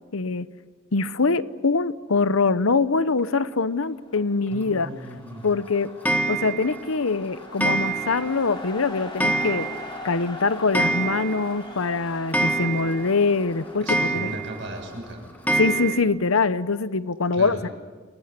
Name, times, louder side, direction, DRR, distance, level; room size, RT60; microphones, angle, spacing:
voice 1, 0.1-0.5 0.9-4.9 5.4-5.9 6.3-9.7 10.0-13.9 14.1-14.3 15.6-17.7, left 4 dB, 90° left, 15 dB, 0.9 m, -23 dB
sound 1, 4.0-15.9, left 2 dB, 25° left, 4.2 m, -42 dB
voice 2, 4.5-5.5 13.8-15.3 17.3-17.6, right 1 dB, 60° right, 2 dB, 7.2 m, -37 dB
Clock, 6.0-6.8 7.6-8.3 8.6-8.7 9.2-10.0 10.2-10.3 10.6-11.5 11.8-11.9 12.3-13.1 13.9-14.6 15.5-16.0, right 2 dB, 10° left, 1.5 m, -25 dB
28.5 x 19.0 x 8.3 m, 1.5 s
head